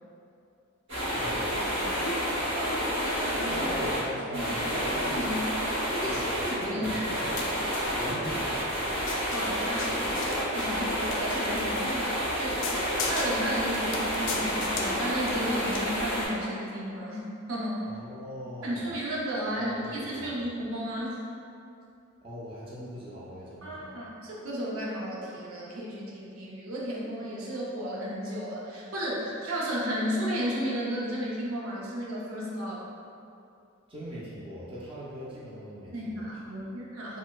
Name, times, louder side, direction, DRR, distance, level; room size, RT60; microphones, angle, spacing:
sound 1, 0.9-4.0 4.3-16.3, equal, 60° right, 1.1 m, -29 dB
voice 1, 1.2-1.6 3.5-5.4 5.8-7.7 7.9-8.8 17.8-18.8 19.6-20.3 22.2-23.9 33.9-36.3, equal, 25° right, -8 dB, 0.5 m, -39 dB
voice 2, 2.0-3.7 4.3-4.5 5.0-5.4 6.0-6.2 6.5-7.2 9.1-12.1 12.4-12.6 13.1-17.8 18.6-21.2 23.6-32.9 35.9-37.2, equal, 85° right, -5 dB, 0.6 m, -33 dB
sound 2, 6.9-15.9, left 4 dB, 60° left, 0.3 m, -40 dB
4.1 x 2.1 x 2.3 m, 2.5 s
head